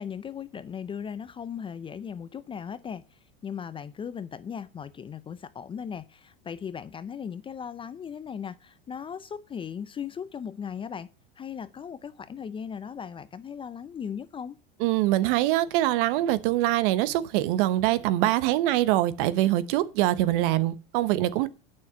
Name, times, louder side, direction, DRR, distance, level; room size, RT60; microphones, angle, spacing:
voice 1, 0.0-11.1 11.4-14.6, left 7 dB, 20° left, 0.5 m, -37 dB
voice 2, 14.8-21.5, right 15 dB, 65° right, 1.1 m, -24 dB
8.7 x 6.4 x 6.9 m
supercardioid pair, 120°, 29 cm